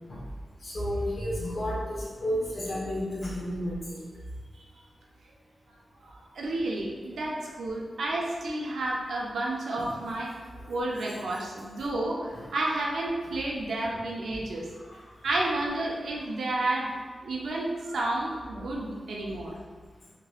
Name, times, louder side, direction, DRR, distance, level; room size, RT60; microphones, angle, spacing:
voice 1, 0.6-4.1 9.8-9.9 14.9-15.0 18.6-18.7, equal, 55° left, -6 dB, 0.9 m, -32 dB
voice 2, 6.1-10.3 10.7-14.6 15.2-16.9 17.2-19.5, right 2 dB, 90° right, -2 dB, 0.5 m, -31 dB
2.9 x 2.9 x 2.3 m, 1.5 s
wide cardioid pair, 135°, 0 cm